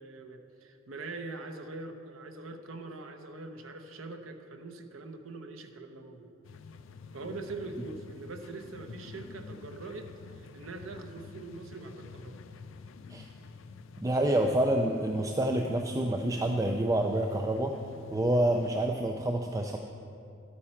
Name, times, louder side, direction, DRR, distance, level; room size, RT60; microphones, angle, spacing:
voice 1, 0.0-6.3 7.1-12.4, right 3 dB, 75° right, 5 dB, 0.8 m, -43 dB
sound 1, 6.4-18.9, left 4 dB, 65° left, 0.4 m, -49 dB
voice 2, 14.0-17.8 18.1-19.8, right 1 dB, 15° right, 3 dB, 0.4 m, -27 dB
11.5 x 8.4 x 4.4 m, 2.5 s
head